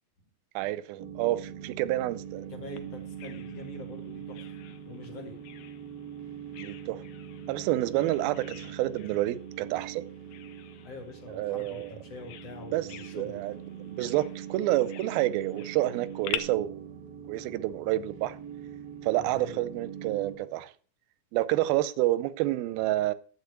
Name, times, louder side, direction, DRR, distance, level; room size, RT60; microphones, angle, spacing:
voice 1, 0.6-2.5 6.6-7.0 7.5-10.1 11.3-11.9 12.7-12.9 13.1-13.5 13.8-16.9 17.3-18.4 19.0-20.7 21.3-23.1, right 15 dB, 90° right, 2.5 m, -29 dB
sound 1, 1.0-20.4, right 9 dB, 50° right, 1.3 m, -42 dB
voice 2, 2.5-4.4 4.9-5.4 10.8-13.4 19.2-19.6, left 2 dB, 50° left, 2.4 m, -44 dB
Bird vocalization bird call bird song, 2.8-16.4, left 12 dB, 75° left, 1.8 m, -46 dB
12.0 x 4.4 x 8.3 m
omnidirectional pair, 4.1 m